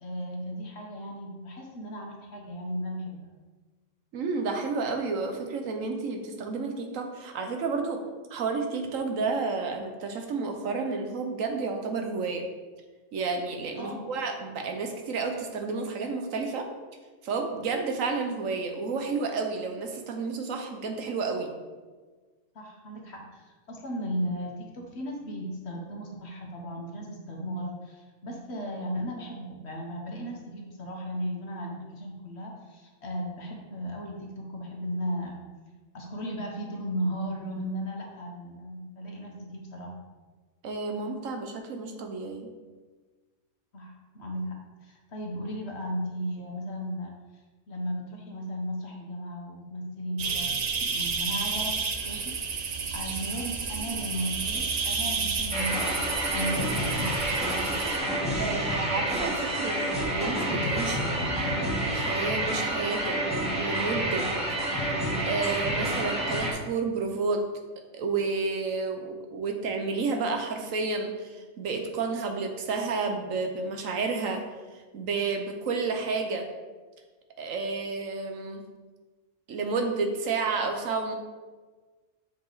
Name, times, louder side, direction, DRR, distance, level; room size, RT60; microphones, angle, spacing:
voice 1, 0.0-3.3 13.8-14.1 22.5-35.4 35.9-40.0 43.7-47.1 47.7-55.9 56.3-57.2, equal, 55° left, 0 dB, 1.4 m, -36 dB
voice 2, 4.1-8.0 8.3-12.4 13.1-16.7 17.2-21.5 40.6-42.5 58.4-61.1 61.9-63.2 63.5-64.3 64.9-65.0 65.3-67.4 67.9-74.4 74.7-76.5 77.4-78.6 79.5-81.1, right 4 dB, 80° right, 4 dB, 1.2 m, -31 dB
sound 1, 50.2-58.0, right 5 dB, 50° right, 0.5 m, -31 dB
sound 2, 55.5-66.5, right 1 dB, 5° right, 1.4 m, -28 dB
7.1 x 4.8 x 4.0 m, 1.4 s
omnidirectional pair, 1.4 m